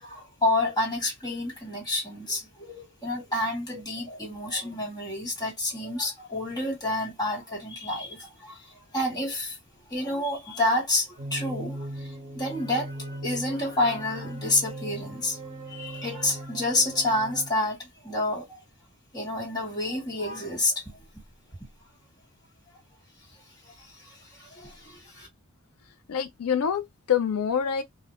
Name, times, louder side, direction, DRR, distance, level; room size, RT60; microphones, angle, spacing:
voice 1, 0.0-9.6 9.9-15.4 15.7-18.6 19.1-21.0 21.6-21.7 23.7-25.3, left 1 dB, 15° left, 1.0 m, -29 dB
sound 1, 11.2-17.5, right 1 dB, 40° right, 0.9 m, -39 dB
voice 2, 26.1-27.8, left 8 dB, 85° left, 0.4 m, -26 dB
2.1 x 2.0 x 2.9 m
head